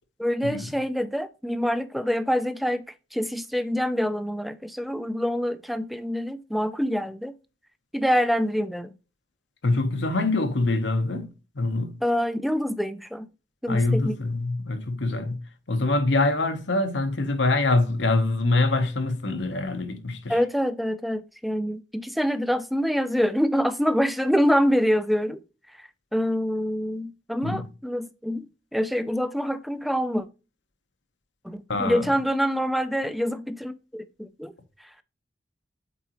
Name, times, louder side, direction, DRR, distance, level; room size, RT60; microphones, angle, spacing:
voice 1, 0.2-2.8 3.1-7.3 7.9-8.9 12.0-13.3 13.6-14.2 20.3-25.4 25.8-30.3 31.4-34.5, equal, ahead, 0.4 m, -26 dB
voice 2, 9.6-12.0 13.7-15.4 15.7-20.4 27.4-27.7 31.7-32.1, left 2 dB, 90° left, 1.0 m, -24 dB
8.1 x 3.9 x 3.0 m
head